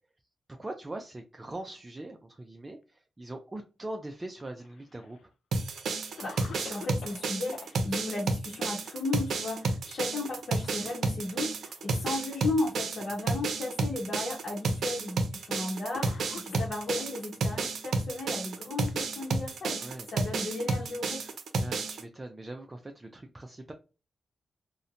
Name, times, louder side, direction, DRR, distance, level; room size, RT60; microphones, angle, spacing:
voice 1, 0.5-5.3 10.6-11.0 19.8-20.1 21.6-23.7, right 1 dB, 20° right, 4 dB, 0.3 m, -42 dB
Cough, 4.4-5.2 5.8-5.9 6.2-7.7 9.6-10.0 10.3-10.5 11.3-12.0 12.8-12.9 13.9-14.0 15.1-15.3 15.9-17.2 18.2-19.6, left 6 dB, 90° left, 0.3 m, -48 dB
sound 1, 5.5-22.0, right 3 dB, 85° right, 0.5 m, -31 dB
voice 2, 6.2-21.3, left 2 dB, 55° left, -3 dB, 0.9 m, -35 dB
2.7 x 2.1 x 2.4 m, 0.32 s
wide cardioid pair, 120°, 0 cm